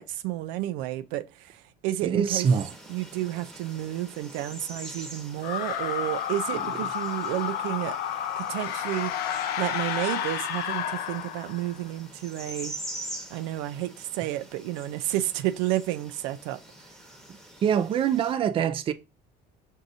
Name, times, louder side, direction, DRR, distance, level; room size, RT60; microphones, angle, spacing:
voice 1, 0.0-2.5 2.9-8.0 8.4-9.1 9.6-12.7 13.3-16.6, right 15 dB, 90° right, 0.5 m, -31 dB
voice 2, 2.0-2.7 17.6-18.9, right 7 dB, 30° right, 0.4 m, -24 dB
sound 1, 2.3-18.3, right 1 dB, ahead, 1.0 m, -45 dB
sound 2, 5.4-11.8, left 9 dB, 60° left, 0.5 m, -31 dB
6.1 x 2.7 x 2.6 m
cardioid pair, 125°, 18 cm